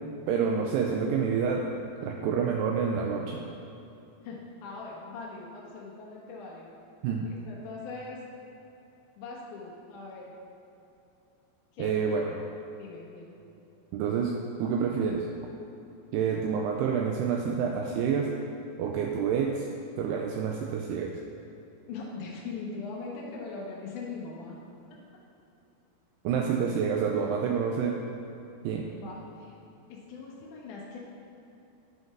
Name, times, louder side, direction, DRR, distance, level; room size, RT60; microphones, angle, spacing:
voice 1, 0.3-1.7 2.0-3.4 7.0-7.3 11.8-12.2 13.9-15.3 16.1-18.3 18.8-19.7 20.0-21.1 26.2-28.0 28.6-28.9, right 6 dB, 80° right, 1 dB, 2.4 m, -28 dB
voice 2, 4.2-6.7 7.2-8.2 9.2-10.3 11.7-11.9 12.8-13.4 15.9-16.1 21.9-24.5 28.9-29.5 29.9-31.0, left 4 dB, 70° left, -4 dB, 2.0 m, -41 dB
11.0 x 5.3 x 5.9 m, 2.8 s
omnidirectional pair, 5.1 m